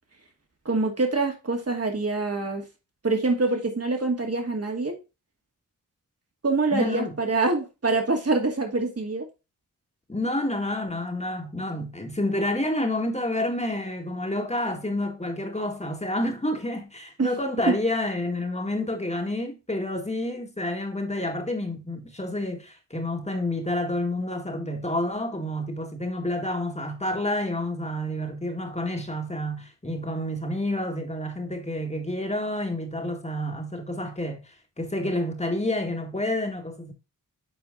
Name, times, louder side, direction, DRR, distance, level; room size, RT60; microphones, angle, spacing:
voice 1, 0.7-2.7 3.0-4.9 6.4-9.3 17.2-17.3 17.7-17.8, right 3 dB, 40° right, 2.3 m, -25 dB
voice 2, 6.7-7.2 10.1-36.9, left 1 dB, 20° left, 1.9 m, -29 dB
7.7 x 4.4 x 3.8 m
cardioid pair, 45°, 36 cm